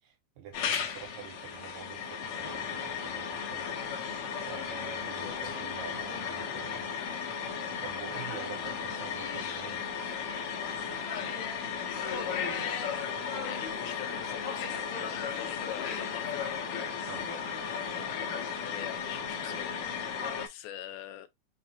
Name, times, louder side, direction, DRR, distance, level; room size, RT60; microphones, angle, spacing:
voice 1, 0.0-3.7 4.5-7.3 7.8-9.8 17.1-17.3, right 8 dB, 75° right, 2.9 m, -47 dB
sound 1, 0.5-20.5, left 6 dB, 70° left, 1.8 m, -35 dB
voice 2, 5.2-5.6 11.9-12.6 13.4-16.5 17.6-21.3, left 12 dB, 90° left, 2.4 m, -45 dB
5.9 x 2.1 x 2.8 m
omnidirectional pair, 4.1 m